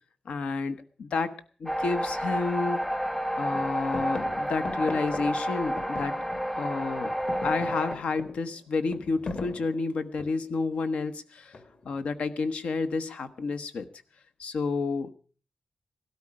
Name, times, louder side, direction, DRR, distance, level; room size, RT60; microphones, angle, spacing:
voice 1, 0.2-1.3 1.6-2.8 3.4-6.1 6.6-7.1 7.4-11.6 11.8-13.9 14.4-15.1, left 4 dB, 80° left, 11 dB, 1.2 m, -30 dB
sound 1, 1.7-8.0, equal, 5° left, 0.7 m, -30 dB
sound 2, 2.1-2.2 2.7-3.2 3.5-6.7 7.0-10.6 11.5-12.0, left 3 dB, 50° left, 2.0 m, -40 dB
17.5 x 13.0 x 4.9 m, 0.41 s
wide cardioid pair, 145°, 2 cm